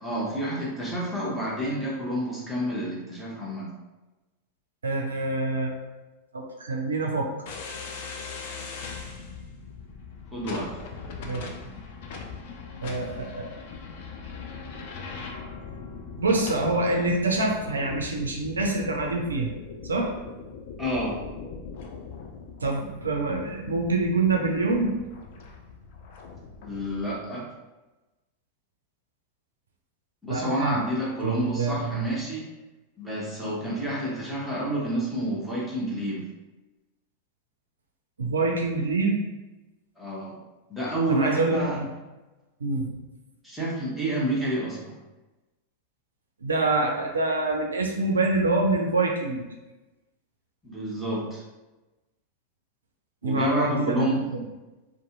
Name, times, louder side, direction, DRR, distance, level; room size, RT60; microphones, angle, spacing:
voice 1, 0.0-3.7 10.3-10.7 20.8-21.2 26.6-27.5 30.2-32.4 33.0-36.2 40.0-40.4 40.7-41.8 43.4-45.0 50.6-51.4 53.2-54.4, right 1 dB, 5° left, -6 dB, 0.8 m, -29 dB
voice 2, 4.8-5.8 6.3-7.3 11.2-11.5 12.8-13.5 16.2-19.5 19.8-20.1 22.6-25.1 30.3-30.8 31.2-32.1 38.2-39.2 41.1-41.9 42.6-42.9 46.4-49.5 53.2-54.4, right 3 dB, 75° right, 1 dB, 0.3 m, -26 dB
sound 1, 7.5-27.2, left 5 dB, 50° left, 0.3 m, -40 dB
2.6 x 2.5 x 2.4 m, 1.1 s
figure-of-eight pair, 90°, 0 cm